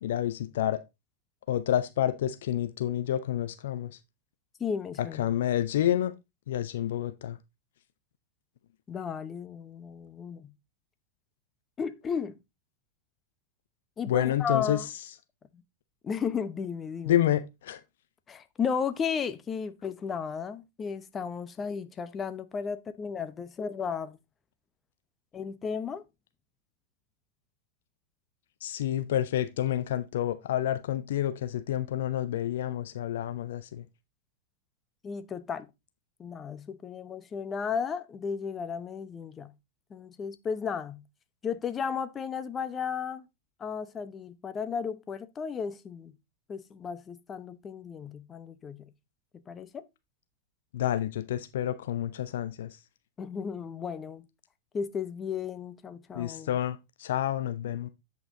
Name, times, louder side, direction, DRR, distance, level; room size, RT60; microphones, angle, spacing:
voice 1, 0.0-0.8 1.5-3.9 5.2-6.1 6.5-7.4 14.1-14.8 17.1-17.8 28.6-33.8 50.7-52.7 56.1-57.9, left 11 dB, 60° left, 0.8 m, -29 dB
voice 2, 4.6-5.3 8.9-10.5 11.8-12.4 14.0-14.9 16.0-17.2 18.3-24.2 25.3-26.0 35.0-35.7 36.2-39.5 39.9-41.0 41.4-43.3 43.6-46.1 46.5-48.8 49.3-49.8 53.2-54.3 54.7-56.5, left 6 dB, 20° left, 0.9 m, -34 dB
8.8 x 5.5 x 3.9 m
figure-of-eight pair, 90°, 0 cm